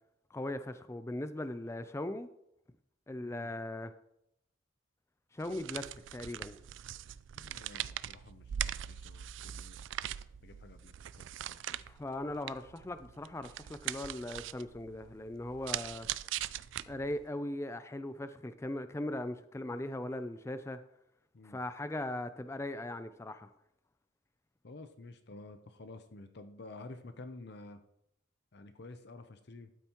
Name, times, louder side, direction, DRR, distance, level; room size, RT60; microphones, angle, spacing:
voice 1, 0.3-2.3 3.1-3.9 5.3-6.6 11.9-16.1 16.9-20.8 21.4-23.5, left 1 dB, 15° left, 11 dB, 0.3 m, -39 dB
sound 1, 5.4-17.3, right 11 dB, 70° right, 0.3 m, -41 dB
voice 2, 7.3-9.8 10.4-11.6 21.3-21.6 24.6-27.8 28.5-29.7, left 2 dB, 55° left, 9 dB, 0.6 m, -51 dB
12.5 x 9.0 x 3.0 m, 0.80 s
head